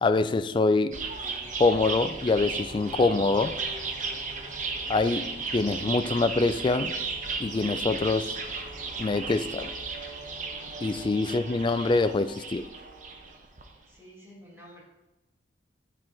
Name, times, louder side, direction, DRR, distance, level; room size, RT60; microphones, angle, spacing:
voice 1, 0.0-1.0 1.6-3.5 4.9-6.9 7.4-8.3 9.0-9.7 10.8-12.7, left 3 dB, 25° left, 11 dB, 0.3 m, -25 dB
sound 1, 0.9-13.8, right 4 dB, 45° right, 0.8 m, -35 dB
voice 2, 13.9-14.8, equal, 15° right, -5 dB, 2.0 m, -50 dB
8.5 x 4.6 x 4.4 m, 1.0 s
head